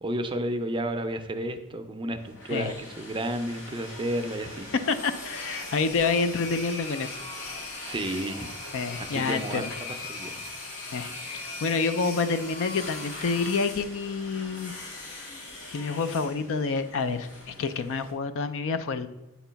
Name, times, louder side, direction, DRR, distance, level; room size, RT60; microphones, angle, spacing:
voice 1, 0.0-4.7 7.9-8.6 9.0-10.4 10.7-11.2, right 1 dB, 20° right, 8 dB, 0.4 m, -32 dB
sound 1, 2.2-18.1, left 2 dB, 85° left, 1.6 m, -40 dB
voice 2, 4.9-7.2 8.7-9.7 10.9-14.7 15.7-19.1, left 4 dB, 60° left, 11 dB, 0.4 m, -28 dB
8.0 x 3.0 x 5.6 m, 1.0 s
head